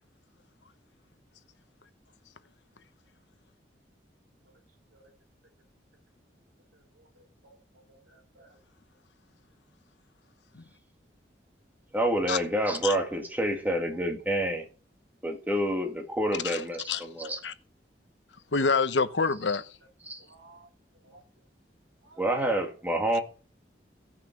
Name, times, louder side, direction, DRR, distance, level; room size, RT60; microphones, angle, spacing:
voice 1, 7.0-7.6 7.9-8.6 13.1-13.2 20.2-20.7 21.0-21.2 22.0-22.3 23.1-23.2, right 2 dB, 85° right, 3.1 m, -56 dB
voice 2, 11.9-14.7 15.2-17.4 20.0-20.2 22.2-23.2, right 1 dB, 10° right, 1.9 m, -28 dB
voice 3, 16.3-17.0 17.4-17.5 18.5-19.8, left 4 dB, 85° left, 1.0 m, -27 dB
16.0 x 5.9 x 6.0 m
head